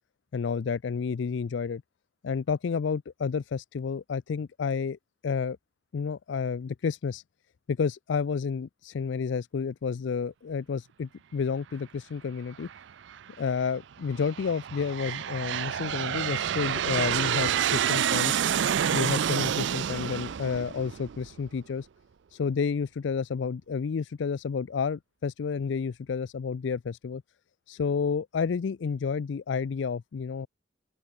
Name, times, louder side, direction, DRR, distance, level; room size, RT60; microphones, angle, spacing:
voice 1, 0.3-1.8 2.2-5.0 5.2-5.6 5.9-7.2 7.7-12.7 13.4-18.4 18.9-21.9 22.3-27.2 27.7-30.5, left 5 dB, 65° left, 0.4 m, -30 dB
Aircraft, 12.7-13.2 13.9-21.5, right 9 dB, 65° right, 0.4 m, -28 dB
open air
head